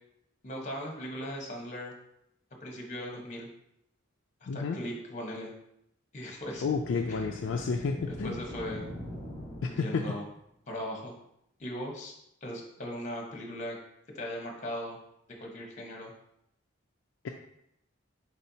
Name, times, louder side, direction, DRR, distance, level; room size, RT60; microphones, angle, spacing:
voice 1, 0.4-1.9 2.6-3.5 4.4-5.5 6.1-6.6 7.1-7.6 8.1-8.8 9.7-10.2 10.7-11.1 11.6-12.1 12.4-13.8 14.1-15.0 15.4-16.1, equal, 40° left, 0 dB, 1.0 m, -38 dB
voice 2, 4.5-4.8 6.6-8.4 9.6-10.0, left 5 dB, 65° left, 2 dB, 0.4 m, -31 dB
sound 1, 6.4-10.2, equal, 20° left, 1.4 m, -43 dB
4.4 x 4.2 x 2.8 m, 0.77 s
head